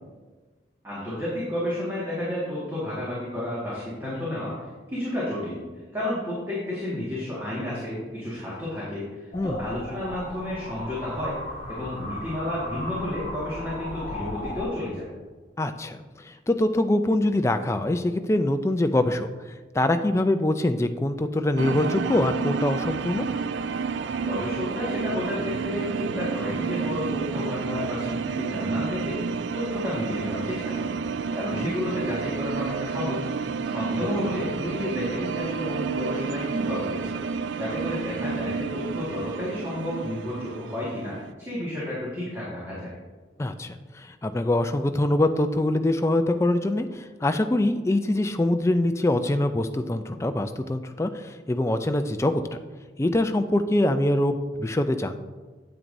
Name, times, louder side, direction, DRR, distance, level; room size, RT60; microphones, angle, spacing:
voice 1, 0.8-5.6 5.9-11.4 11.7-15.1 24.2-33.2 33.6-37.2 37.6-41.1 41.4-42.9, left 1 dB, 15° right, -8 dB, 1.7 m, -31 dB
sound 1, 9.3-14.6, left 1 dB, 45° left, 1.4 m, -36 dB
voice 2, 15.6-16.0 16.2-19.3 19.7-23.3 31.6-31.7 43.4-52.4 53.0-55.2, left 1 dB, 15° left, 8 dB, 0.3 m, -24 dB
sound 2, 21.6-41.3, right 5 dB, 80° right, 0.3 m, -30 dB
9.0 x 8.1 x 2.6 m, 1.3 s
head